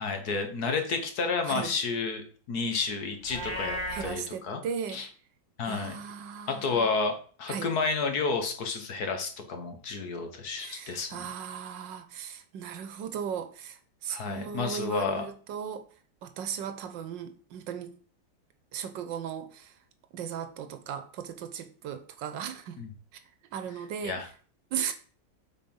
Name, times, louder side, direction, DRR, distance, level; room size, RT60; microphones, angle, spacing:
voice 1, 0.0-4.6 4.9-5.1 5.6-6.0 6.5-11.3 14.1-15.3 22.8-22.9 24.0-24.3, left 4 dB, 60° left, 1.8 m, -31 dB
Livestock farm animals working animals, 3.2-4.1, left 1 dB, 15° left, 1.8 m, -34 dB
voice 2, 3.9-5.0 5.6-6.9 7.5-7.7 10.6-15.9 16.2-18.0 18.7-19.7 20.1-22.8 23.5-24.2 24.7-24.9, right 7 dB, 90° right, 1.6 m, -37 dB
7.9 x 4.4 x 5.5 m
omnidirectional pair, 1.9 m